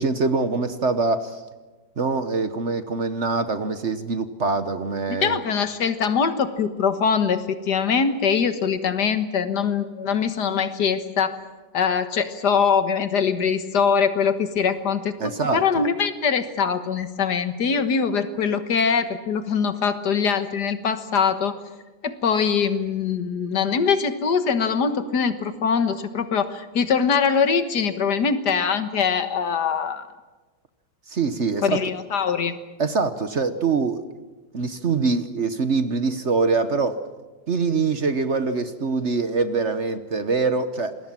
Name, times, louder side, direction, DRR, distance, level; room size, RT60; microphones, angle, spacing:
voice 1, 0.0-1.4 2.0-5.4 15.2-15.6 31.1-31.8 32.8-34.0 34.5-37.0 37.5-41.0, right 4 dB, 45° right, 11 dB, 1.3 m, -24 dB
voice 2, 5.1-11.4 11.7-21.5 22.0-30.0 31.6-32.6, left 6 dB, 70° left, 10 dB, 2.0 m, -23 dB
27.5 x 21.5 x 7.5 m, 1.2 s
omnidirectional pair, 1.9 m